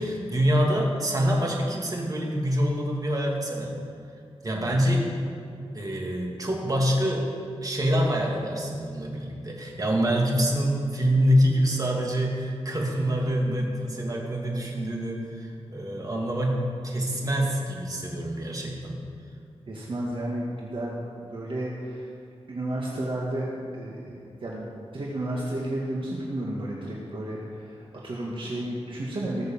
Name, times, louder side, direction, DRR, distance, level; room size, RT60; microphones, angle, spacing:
voice 1, 0.0-3.7 4.4-5.1 5.7-7.3 7.6-16.6 16.8-19.0, equal, 35° right, -1 dB, 2.5 m, -26 dB
voice 2, 19.7-22.1 22.5-29.5, right 1 dB, 55° right, -4 dB, 1.9 m, -32 dB
18.5 x 6.7 x 7.2 m, 2.3 s
wide cardioid pair, 110°, 11 cm